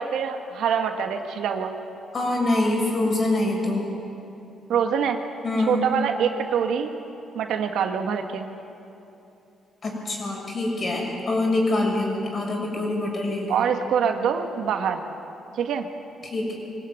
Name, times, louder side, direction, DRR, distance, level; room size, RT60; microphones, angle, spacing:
voice 1, 0.0-1.7 4.7-5.2 5.7-6.9 7.3-8.5 13.5-15.0 15.6-15.9, right 7 dB, 75° right, 5 dB, 1.8 m, -25 dB
voice 2, 2.1-3.9 5.4-5.8 9.8-13.5 16.2-16.5, left 2 dB, 40° left, 0 dB, 6.9 m, -25 dB
23.0 x 17.5 x 9.6 m, 2.8 s
cardioid pair, 90°, 0 cm